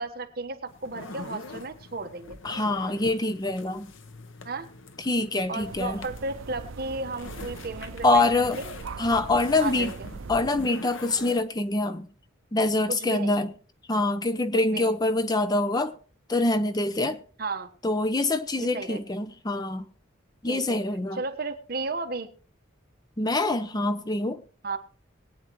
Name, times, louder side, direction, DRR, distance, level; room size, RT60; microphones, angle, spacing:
voice 1, 0.0-2.4 4.4-4.7 5.5-8.7 9.6-10.1 12.9-13.4 14.5-14.9 17.4-17.7 18.6-19.0 20.5-20.8 21.1-22.3 24.6-24.8, right 3 dB, 50° right, 1.3 m, -34 dB
sound 1, 0.7-11.4, left 3 dB, 75° left, 1.0 m, -44 dB
voice 2, 2.4-3.9 5.0-6.0 8.0-8.6 9.0-9.9 10.3-12.1 12.5-13.5 13.9-15.9 16.3-17.2 17.8-19.8 20.4-21.2 23.2-24.4, left 2 dB, 20° left, 0.6 m, -25 dB
sound 2, 5.6-10.7, right 4 dB, 80° right, 0.5 m, -41 dB
21.5 x 8.9 x 3.1 m
head